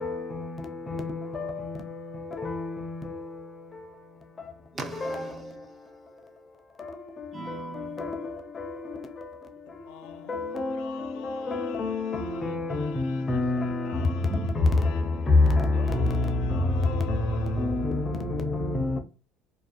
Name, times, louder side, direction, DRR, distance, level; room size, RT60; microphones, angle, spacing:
voice 1, 2.4-2.7 8.0-8.1 11.5-13.8 15.6-15.7 17.6-18.0 18.7-19.0, left 2 dB, 25° left, 0.5 m, -28 dB
voice 2, 4.7-5.6 7.3-8.2 14.2-14.6, right 3 dB, 30° right, 0.6 m, -38 dB
voice 3, 9.7-18.2, left 8 dB, 80° left, 0.3 m, -45 dB
2.4 x 2.2 x 2.5 m
supercardioid pair, 100°, 0 cm